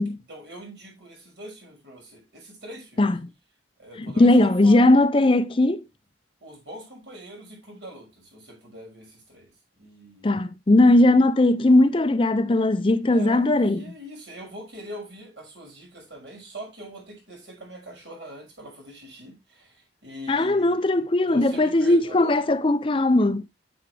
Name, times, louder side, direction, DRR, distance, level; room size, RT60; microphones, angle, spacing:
voice 1, 0.3-3.1 3.8-4.9 6.4-9.5 9.8-10.5 13.0-20.8 21.2-22.5, equal, 70° right, 6.3 m, -42 dB
voice 2, 4.2-5.8 10.2-13.8 20.3-23.4, left 2 dB, 30° left, 0.5 m, -19 dB
9.7 x 7.9 x 3.2 m
head